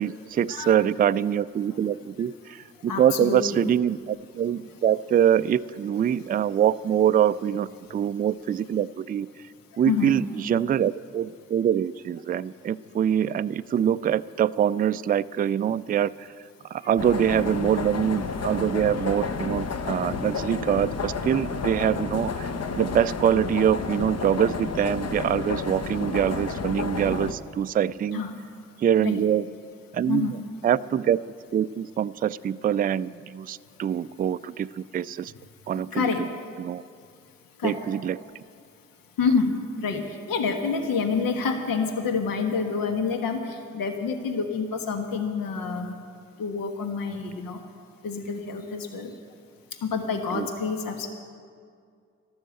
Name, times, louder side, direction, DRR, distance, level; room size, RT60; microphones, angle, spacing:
voice 1, 0.0-9.3 9.8-16.3 16.7-22.5 22.8-28.2 28.8-29.5 29.9-30.4 30.6-31.2 31.5-35.3 35.7-36.3 36.6-36.8 37.6-38.2 50.3-50.5, right 9 dB, 25° right, 14 dB, 0.4 m, -24 dB
voice 2, 2.9-3.6 9.9-10.2 28.1-28.3 29.0-29.2 30.1-30.4 35.7-36.2 37.6-37.8 39.2-45.9 46.4-47.6 48.0-49.1 49.8-51.1, left 5 dB, 65° left, 5 dB, 1.4 m, -28 dB
sound 1, 17.0-27.3, left 5 dB, 40° left, 1.0 m, -31 dB
12.5 x 11.5 x 7.8 m, 2.2 s
hypercardioid pair, 40°, 37 cm